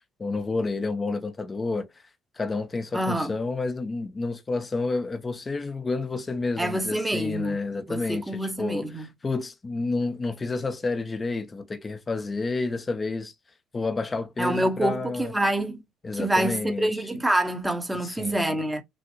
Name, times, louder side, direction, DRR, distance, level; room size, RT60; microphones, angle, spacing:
voice 1, 0.2-1.9 2.4-13.3 13.7-15.3 16.0-16.9 18.0-18.6, left 3 dB, 25° left, 0.9 m, -30 dB
voice 2, 2.9-3.3 6.6-7.6 7.9-9.1 14.4-15.8 16.1-18.8, right 1 dB, 10° right, 1.2 m, -26 dB
6.2 x 2.4 x 2.9 m
cardioid pair, 95°, 0 cm